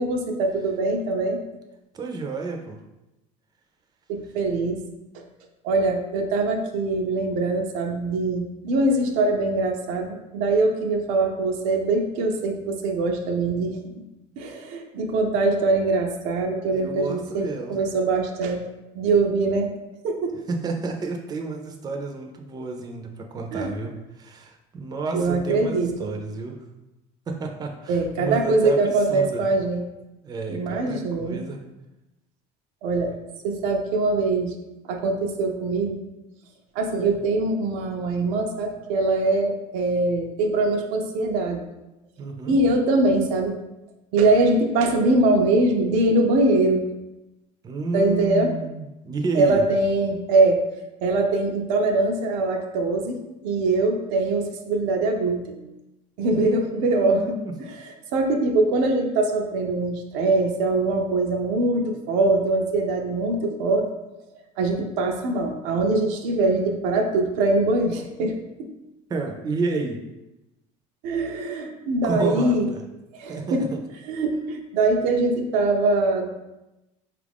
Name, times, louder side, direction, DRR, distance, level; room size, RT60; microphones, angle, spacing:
voice 1, 0.0-1.4 4.1-4.8 5.1-5.2 5.6-13.8 14.4-18.6 18.9-19.7 20.0-20.3 23.5-23.7 25.1-25.9 27.9-29.8 30.5-31.4 32.8-33.1 33.4-34.5 34.9-36.0 36.8-41.6 42.5-43.6 44.1-46.8 47.9-48.5 49.4-50.6 51.0-55.6 56.2-57.8 58.1-63.9 64.6-68.7 71.0-72.7 73.1-73.7 74.1-76.3, right 2 dB, 80° right, 2 dB, 0.6 m, -23 dB
voice 2, 1.9-2.8 16.7-17.8 20.5-26.6 27.3-29.4 30.2-31.6 42.2-42.6 47.6-49.6 56.3-57.5 69.1-70.0 72.0-72.8 73.3-73.8, right 3 dB, 30° right, 3 dB, 0.6 m, -30 dB
4.3 x 2.4 x 3.5 m, 0.96 s
supercardioid pair, 110°, 14 cm